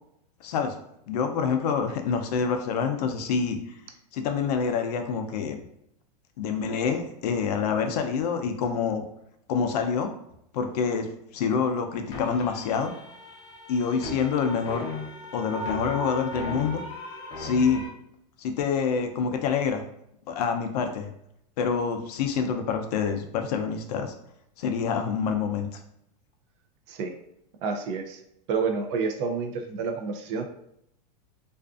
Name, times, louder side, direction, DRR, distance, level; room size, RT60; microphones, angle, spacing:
voice 1, 0.4-0.7 1.1-3.6 4.1-5.6 6.4-9.0 9.5-10.1 10.5-11.1 11.3-12.9 13.7-14.8 15.3-16.8 17.4-17.8 18.4-19.8 20.3-21.1 21.6-24.1 24.6-25.8, left 6 dB, 70° left, 5 dB, 0.5 m, -26 dB
sound 1, 12.1-17.9, left 2 dB, 20° left, 0.5 m, -36 dB
voice 2, 27.6-28.2 28.5-30.4, right 5 dB, 45° right, 4 dB, 0.4 m, -29 dB
2.5 x 2.3 x 2.4 m, 0.77 s
supercardioid pair, 150°, 21 cm